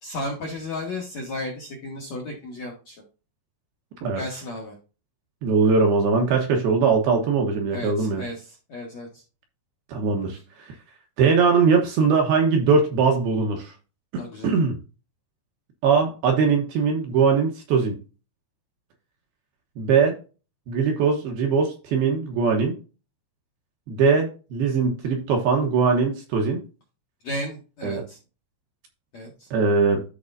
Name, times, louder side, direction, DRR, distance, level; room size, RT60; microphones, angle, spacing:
voice 1, 0.0-3.0 4.1-4.8 7.7-9.2 14.2-14.5 27.2-28.2 29.1-29.5, left 1 dB, 60° left, -2 dB, 1.9 m, -34 dB
voice 2, 5.4-8.2 9.9-10.7 11.2-13.7 14.1-14.8 15.8-18.0 19.8-20.2 20.7-22.8 23.9-26.6 27.8-28.0 29.5-30.0, right 5 dB, 70° right, 2 dB, 2.6 m, -21 dB
13.0 x 4.7 x 2.7 m, 0.33 s
omnidirectional pair, 5.5 m